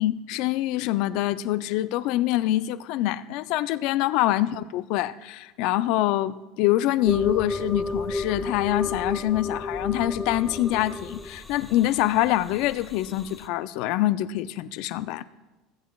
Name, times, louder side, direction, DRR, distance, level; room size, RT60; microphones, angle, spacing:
voice 1, 0.0-15.3, left 14 dB, 65° left, 0.4 m, -25 dB
sound 1, 7.1-13.5, left 3 dB, 15° left, 0.8 m, -32 dB
21.0 x 8.2 x 2.4 m
supercardioid pair, 95°, 0 cm